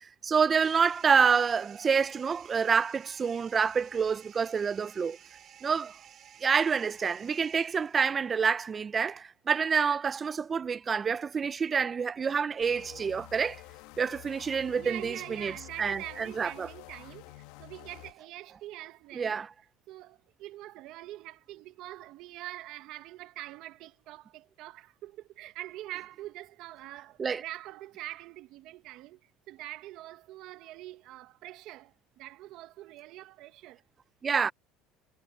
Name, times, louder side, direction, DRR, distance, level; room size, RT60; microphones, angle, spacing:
voice 1, 0.2-5.2 5.6-5.9 6.4-13.6 14.0-15.5 15.8-16.7 19.1-19.5 27.2-27.4 34.2-34.5, right 6 dB, 30° right, 0.4 m, -27 dB
sound 1, 0.6-8.3, right 10 dB, 45° right, 4.9 m, -54 dB
sound 2, 12.6-18.1, left 19 dB, 80° left, 1.3 m, -49 dB
voice 2, 14.8-19.4 19.9-33.8, right 15 dB, 65° right, 1.1 m, -44 dB
supercardioid pair, 110°, 0 cm